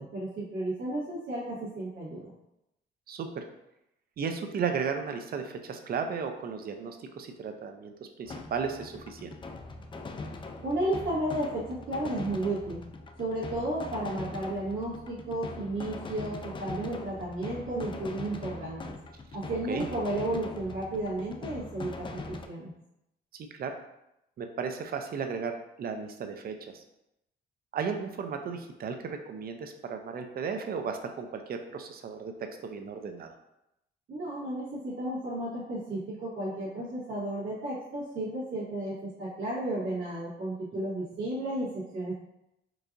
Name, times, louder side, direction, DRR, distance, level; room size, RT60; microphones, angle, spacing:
voice 1, 0.0-2.3 10.6-12.8 13.2-18.9 19.3-22.7 34.1-42.1, right 1 dB, 85° right, -11 dB, 1.4 m, -33 dB
voice 2, 3.1-3.4 4.2-9.3 19.7-19.9 23.3-23.7 24.4-26.8 27.7-32.3 32.6-33.4 40.7-40.8, right 6 dB, 50° right, 6 dB, 0.5 m, -35 dB
sound 1, 8.3-22.5, left 3 dB, 25° left, 0.4 m, -41 dB
4.6 x 2.5 x 2.6 m, 0.86 s
cardioid pair, 90°, 20 cm